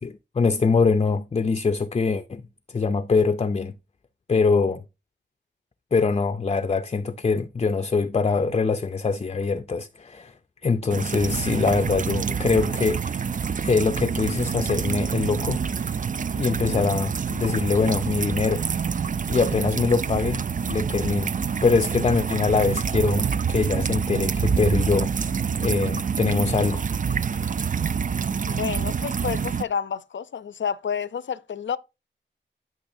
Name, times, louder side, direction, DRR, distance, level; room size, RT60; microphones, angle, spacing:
voice 1, 0.0-2.4 2.7-3.7 4.3-4.8 5.9-10.3 10.6-13.3 13.6-15.6 16.4-18.6 19.3-20.4 20.7-21.4 21.6-25.1 25.6-26.8, left 4 dB, 30° left, 0.4 m, -23 dB
sound 1, 10.9-29.6, right 6 dB, 45° right, 0.4 m, -27 dB
voice 2, 28.5-31.8, left 7 dB, 75° left, 0.6 m, -30 dB
12.0 x 6.2 x 2.6 m
wide cardioid pair, 125°, 20 cm